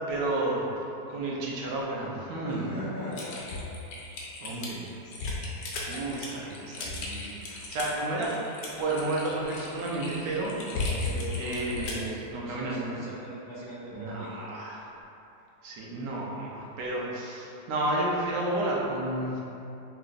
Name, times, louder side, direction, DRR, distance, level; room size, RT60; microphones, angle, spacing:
voice 1, 0.1-2.7 4.4-4.9 5.9-8.4 8.8-10.6 11.4-12.9 13.9-14.9 15.6-19.4, right 2 dB, 90° right, -4 dB, 1.4 m, -31 dB
voice 2, 2.5-3.7 11.0-14.5, left 1 dB, 50° left, -11 dB, 0.6 m, -40 dB
Typing, 3.1-12.1, left 2 dB, 85° left, 1.3 m, -35 dB
5.8 x 2.9 x 2.5 m, 2.8 s
omnidirectional pair, 1.8 m